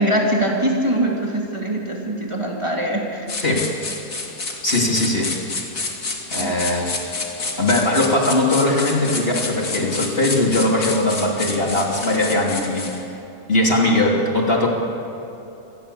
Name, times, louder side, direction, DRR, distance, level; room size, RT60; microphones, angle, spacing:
voice 1, 0.0-3.2 6.4-6.5, right 1 dB, 20° right, -1 dB, 2.9 m, -22 dB
sound 1, 3.3-13.0, left 3 dB, 65° left, 2.8 m, -29 dB
voice 2, 4.6-5.3 6.3-6.9 7.6-12.9 13.5-14.7, left 1 dB, 40° left, -1 dB, 3.1 m, -20 dB
27.0 x 20.0 x 7.0 m, 2.9 s
omnidirectional pair, 1.5 m